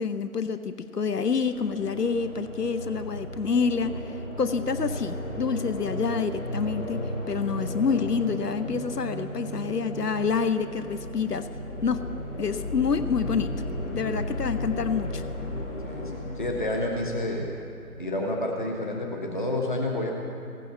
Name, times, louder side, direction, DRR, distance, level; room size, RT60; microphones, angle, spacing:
voice 1, 0.0-4.0 4.4-11.5 11.8-12.0 12.4-13.5 13.9-15.2, left 5 dB, 85° left, 11 dB, 0.8 m, -27 dB
sound 1, 1.1-18.0, left 1 dB, 55° left, 2.8 m, -35 dB
voice 2, 15.8-17.5 18.0-20.1, left 1 dB, 30° left, 0 dB, 1.2 m, -29 dB
16.5 x 9.1 x 7.1 m, 2.7 s
figure-of-eight pair, 160°, 46 cm